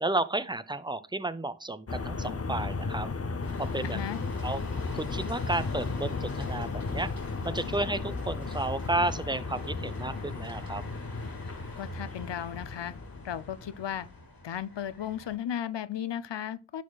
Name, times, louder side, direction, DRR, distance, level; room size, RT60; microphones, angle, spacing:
voice 1, 0.0-3.1 3.6-4.0 4.4-4.6 4.9-7.1 7.4-10.8, right 2 dB, 10° right, 0.5 m, -32 dB
sound 1, 1.9-14.2, left 4 dB, 35° left, 0.6 m, -35 dB
sound 2, 3.4-15.4, left 1 dB, 55° left, 2.2 m, -47 dB
voice 2, 3.8-4.2 11.8-12.9 13.2-14.1 14.4-16.8, left 10 dB, 85° left, 0.5 m, -35 dB
11.0 x 4.2 x 2.3 m
wide cardioid pair, 40°, 42 cm